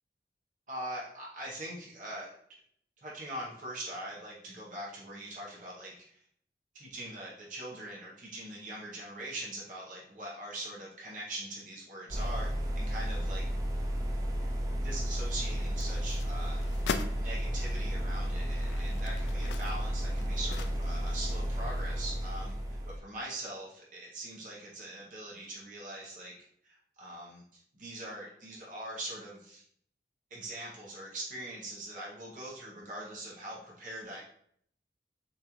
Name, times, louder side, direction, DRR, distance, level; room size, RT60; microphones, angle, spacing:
voice 1, 0.7-2.3 3.0-5.9 6.7-12.5 12.8-13.4 14.8-16.6 17.1-22.5 23.0-26.3 26.6-27.4 27.8-29.6 30.3-34.2, right 1 dB, 45° right, -4 dB, 0.9 m, -42 dB
sound 1, 12.1-23.0, equal, 20° right, 0.5 m, -33 dB
sound 2, 15.6-17.2 17.9-18.0 18.5-21.2 21.5-21.6, left 5 dB, 85° left, 0.4 m, -41 dB
6.8 x 2.5 x 3.0 m, 0.66 s
head